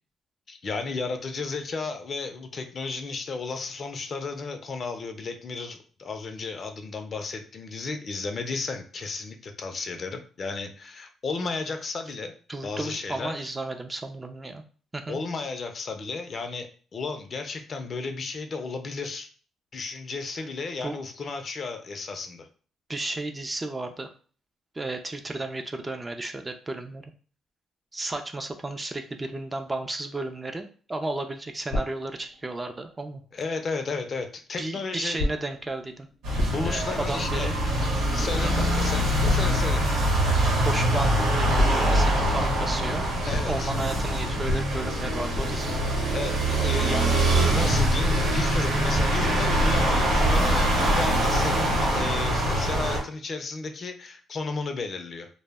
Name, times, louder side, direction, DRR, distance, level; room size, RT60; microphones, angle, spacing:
voice 1, 0.5-12.3 12.6-13.5 15.1-19.3 19.7-22.5 33.3-35.2 36.5-37.5 38.1-39.9 43.3-43.7 46.1-55.3, left 4 dB, 45° left, 6 dB, 0.4 m, -33 dB
voice 2, 12.5-14.6 14.9-15.2 20.3-20.5 20.8-21.0 22.9-24.1 24.7-27.0 27.9-33.2 34.6-36.1 36.6-37.5 38.4-38.5 40.6-43.0 43.5-45.8, right 2 dB, 20° right, 6 dB, 0.3 m, -33 dB
sound 1, 31.7-33.6 35.2-41.2 41.5-47.0, left 1 dB, 80° left, 0.7 m, -36 dB
sound 2, 36.2-53.0, right 1 dB, 90° right, 0.8 m, -24 dB
sound 3, 47.1-52.9, equal, 40° right, 0.7 m, -30 dB
2.1 x 2.0 x 3.4 m, 0.41 s
cardioid pair, 90°, 0 cm